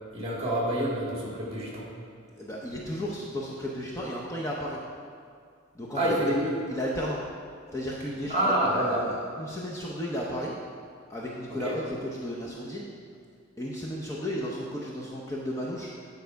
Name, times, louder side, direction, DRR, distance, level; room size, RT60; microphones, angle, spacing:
voice 1, 0.1-1.9 5.9-6.5 8.3-9.0 11.5-11.7, right 1 dB, 30° right, -5 dB, 2.3 m, -27 dB
voice 2, 2.4-4.8 5.7-6.3 6.7-7.2 7.7-10.5 11.1-12.9 13.6-15.9, equal, 15° left, -4 dB, 0.7 m, -34 dB
9.1 x 5.5 x 4.7 m, 2.2 s
head